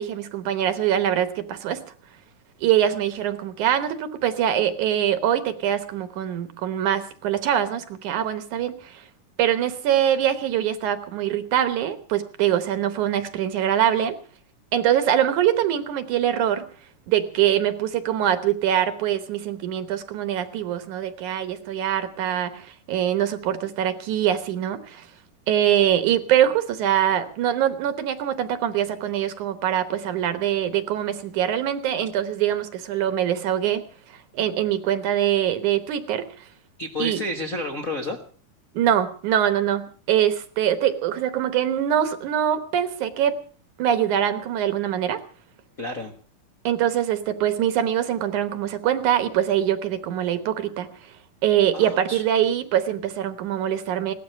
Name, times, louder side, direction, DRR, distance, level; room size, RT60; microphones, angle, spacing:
voice 1, 0.0-1.8 2.6-9.0 9.4-14.1 14.7-16.7 17.1-25.1 25.5-33.8 34.1-36.3 37.0-37.2 38.7-43.4 43.8-45.2 46.6-50.9 51.4-54.1, right 10 dB, 70° right, 11 dB, 2.5 m, -23 dB
voice 2, 36.8-38.2 45.8-46.1 51.7-52.2, left 1 dB, 45° left, 1 dB, 1.1 m, -30 dB
17.5 x 12.5 x 6.6 m, 0.43 s
omnidirectional pair, 3.8 m